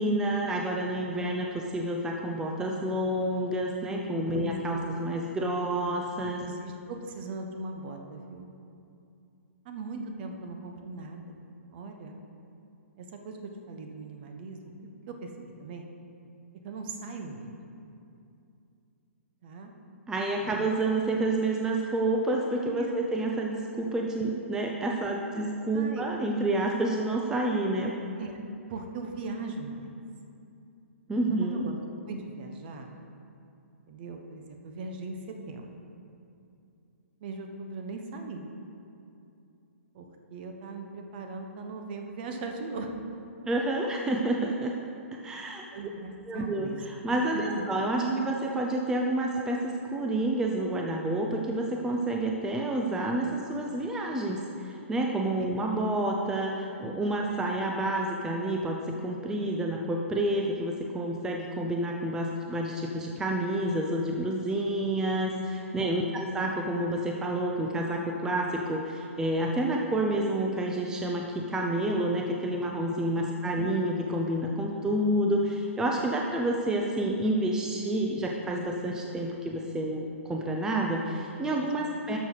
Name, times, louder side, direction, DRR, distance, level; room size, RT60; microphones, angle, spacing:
voice 1, 0.0-6.4 20.1-27.9 31.1-31.6 43.5-44.7 45.2-45.6 46.3-82.2, right 1 dB, 10° right, 0 dB, 0.5 m, -29 dB
voice 2, 6.4-8.5 9.6-11.4 11.7-12.2 13.0-15.3 15.6-15.9 16.6-17.5 19.4-19.7 20.4-20.8 22.6-23.0 25.3-25.5 25.7-26.1 28.2-28.4 28.7-30.0 31.3-31.7 32.1-32.9 33.9-35.8 37.2-38.4 39.9-40.0 40.3-42.9 45.7-46.8 47.3-47.7 47.9-48.2 55.4-55.5 73.2-73.6 81.8-81.9, right 3 dB, 45° right, 4 dB, 1.1 m, -39 dB
11.5 x 6.4 x 4.0 m, 2.6 s
hypercardioid pair, 140°, 8 cm